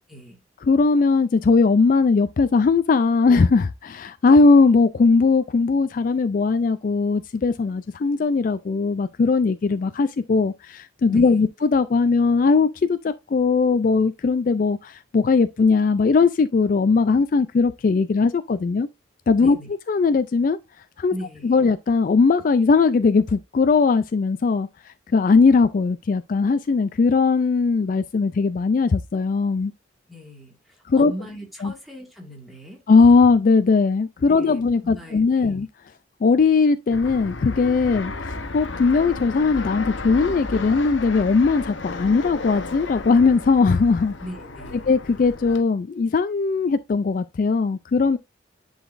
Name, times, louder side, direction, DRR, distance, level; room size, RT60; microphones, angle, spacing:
voice 1, 0.1-0.4 11.1-11.5 19.4-19.7 21.1-21.6 30.1-32.8 34.3-35.6 44.2-44.9, equal, ahead, 2.0 m, -39 dB
voice 2, 0.6-18.9 19.3-19.6 19.9-20.6 21.0-21.1 21.4-24.7 25.1-29.7 30.9-31.1 31.6-31.7 32.9-35.7 36.2-44.1 44.9-48.2, left 4 dB, 45° left, 0.3 m, -19 dB
Fixed-wing aircraft airplane, 36.9-45.6, left 3 dB, 85° left, 0.9 m, -33 dB
10.0 x 3.9 x 2.5 m
head